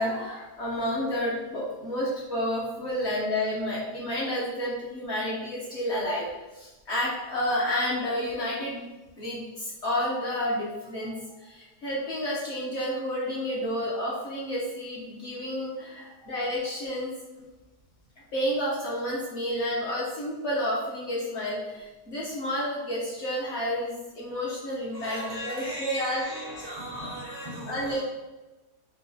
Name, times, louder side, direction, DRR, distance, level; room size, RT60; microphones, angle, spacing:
voice 1, 0.0-6.3 6.5-8.8 9.2-17.1 18.3-26.2 27.7-28.0, equal, 60° left, -6 dB, 0.8 m, -30 dB
voice 2, 16.0-16.4 24.9-28.0, equal, 60° right, -7 dB, 0.6 m, -37 dB
4.6 x 2.1 x 2.6 m, 1.1 s
omnidirectional pair, 1.8 m